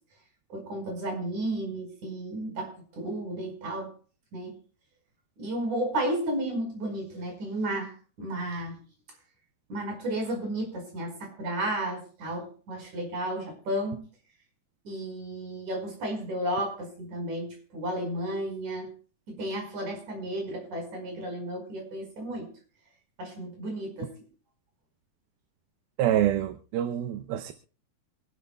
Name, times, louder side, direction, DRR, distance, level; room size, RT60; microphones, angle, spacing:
voice 1, 0.5-3.9 4.3-4.5 5.4-7.9 8.2-8.8 9.7-14.0 14.8-18.9 19.3-22.5 23.2-24.2, right 1 dB, 50° right, 6.2 m, -33 dB
voice 2, 26.0-27.5, right 11 dB, 80° right, 2.5 m, -26 dB
27.0 x 12.0 x 2.3 m
omnidirectional pair, 4.5 m